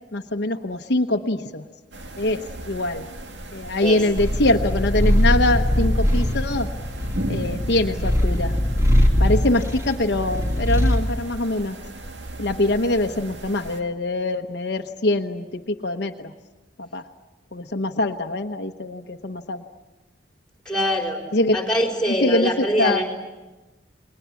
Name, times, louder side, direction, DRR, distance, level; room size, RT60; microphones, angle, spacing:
voice 1, 0.1-1.6 2.2-3.1 3.5-6.7 7.3-8.6 9.2-11.8 12.4-16.3 16.8-17.0 17.5-19.6 21.3-21.6 22.1-23.0, left 2 dB, 65° left, 4 dB, 1.1 m, -23 dB
sound 1, 1.9-13.8, right 1 dB, 70° right, 2.2 m, -37 dB
Purr, 4.2-11.1, equal, 15° right, 2.7 m, -21 dB
voice 2, 20.6-21.2 21.5-23.0, equal, 5° left, 2 dB, 4.5 m, -23 dB
30.0 x 21.5 x 8.4 m, 1.1 s
head